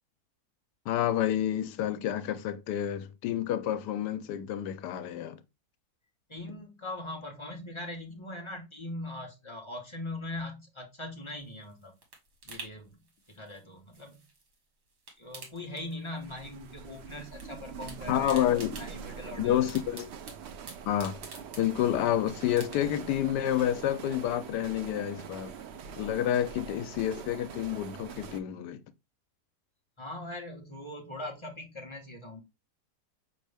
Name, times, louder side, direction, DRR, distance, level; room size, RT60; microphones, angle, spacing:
voice 1, 0.9-5.4 18.1-18.8 19.4-20.1 20.9-21.2 21.6-25.5 26.0-28.8, left 11 dB, 85° left, 1.2 m, -29 dB
voice 2, 6.3-12.0 12.4-13.0 13.3-14.2 15.2-19.6 30.0-32.4, left 1 dB, 30° left, 0.6 m, -41 dB
sound 1, 11.3-14.6 14.9-16.4 16.6-17.5 17.7-22.1 22.5-23.1 23.5-23.6, right 3 dB, 60° right, 1.7 m, -49 dB
sound 2, 16.2-28.4, right 7 dB, 90° right, 0.5 m, -44 dB
5.2 x 3.1 x 3.2 m
omnidirectional pair, 1.8 m